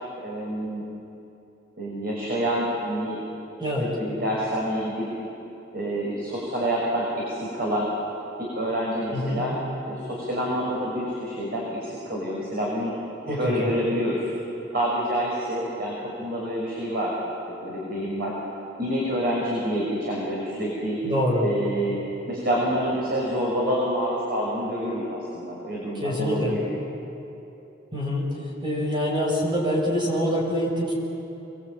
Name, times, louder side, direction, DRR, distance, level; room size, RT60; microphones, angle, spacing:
voice 1, 0.2-0.8 1.8-3.2 3.6-5.1 5.7-7.9 8.4-9.5 9.9-12.9 13.3-14.3 14.7-17.2 17.5-18.3 18.8-21.0 21.4-22.0 22.3-26.6, equal, 55° right, -4 dB, 6.2 m, -27 dB
voice 2, 9.1-9.4 13.2-13.7 21.0-21.5 26.0-26.5 27.9-28.3 28.6-30.9, equal, 25° right, -3 dB, 6.5 m, -25 dB
29.5 x 23.0 x 8.9 m, 3.0 s
head